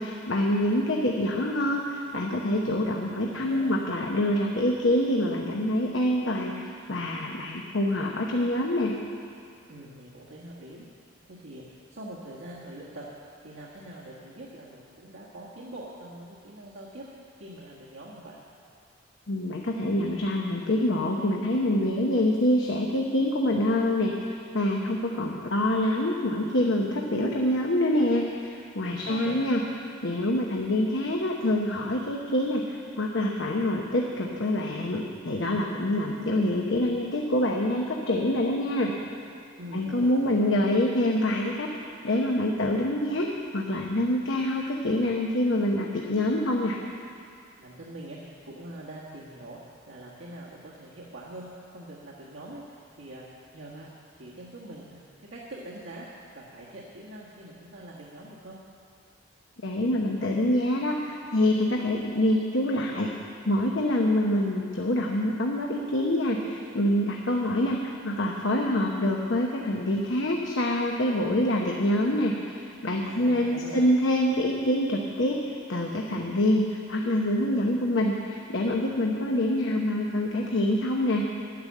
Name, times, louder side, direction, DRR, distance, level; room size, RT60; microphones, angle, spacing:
voice 1, 0.0-8.9 19.3-29.6 30.0-38.9 39.7-41.7 42.0-46.8 59.6-63.1 63.5-81.2, left 1 dB, 70° left, 0 dB, 0.9 m, -26 dB
voice 2, 3.2-3.7 9.7-10.9 11.3-13.1 13.4-18.4 28.9-29.4 39.6-40.4 47.6-55.0 55.3-56.1 56.3-58.6 73.0-73.8, right 1 dB, 80° right, -6 dB, 1.6 m, -43 dB
10.5 x 10.5 x 7.4 m, 2.3 s
head